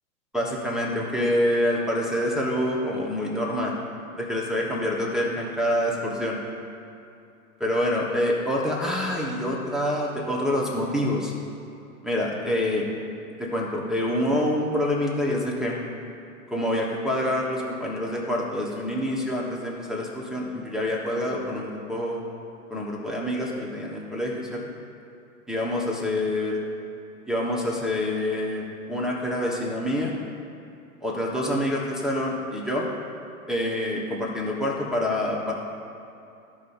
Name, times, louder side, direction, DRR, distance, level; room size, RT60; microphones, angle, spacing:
voice 1, 0.3-3.8 4.1-6.4 7.6-11.3 12.0-12.8 13.4-15.8 16.5-22.2 22.7-24.6 25.5-26.6 27.3-30.2 31.0-32.9 33.5-35.5, left 1 dB, ahead, -5 dB, 1.3 m, -26 dB
15.0 x 5.4 x 2.7 m, 2.7 s
hypercardioid pair, 115°, 43 cm